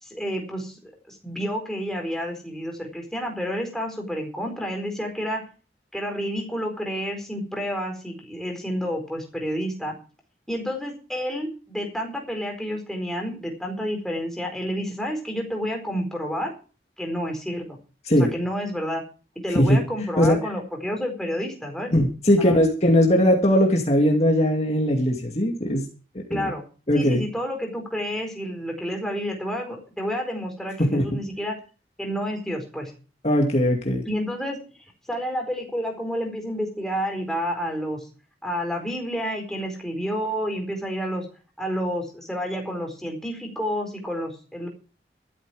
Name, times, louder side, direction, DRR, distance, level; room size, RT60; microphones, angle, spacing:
voice 1, 0.0-5.5 5.9-9.9 10.5-16.5 17.0-17.8 18.1-19.0 19.4-21.9 22.4-22.6 26.3-26.6 26.9-31.6 32.0-32.9 34.0-38.1 38.4-41.3 41.6-44.7, equal, 5° left, 1 dB, 4.4 m, -30 dB
voice 2, 21.9-25.8 26.3-26.5 26.9-27.2 30.8-31.0 33.2-34.0, equal, 35° left, 1 dB, 2.4 m, -19 dB
13.5 x 12.5 x 5.0 m, 0.36 s
head